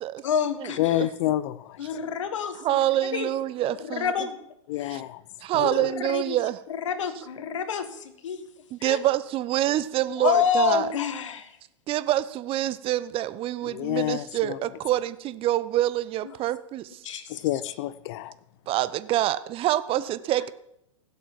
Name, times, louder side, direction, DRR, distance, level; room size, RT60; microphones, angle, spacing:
voice 1, 0.2-1.1 1.8-2.8 3.1-3.3 3.6-4.4 4.8-5.0 5.6-6.4 6.7-8.5 8.8-9.0 10.2-11.6 16.2-16.3 17.0-17.7, left 7 dB, 75° left, 1.9 m, -28 dB
voice 2, 0.8-1.8 4.7-5.2 5.5-5.7 13.7-14.6 17.4-18.3, left 14 dB, 55° left, 0.9 m, -28 dB
voice 3, 2.6-4.1 4.9-5.0 5.4-6.6 8.7-10.9 11.9-17.0 18.7-20.5, right 13 dB, 35° right, 0.9 m, -26 dB
16.5 x 8.1 x 7.4 m
hypercardioid pair, 105°, 16 cm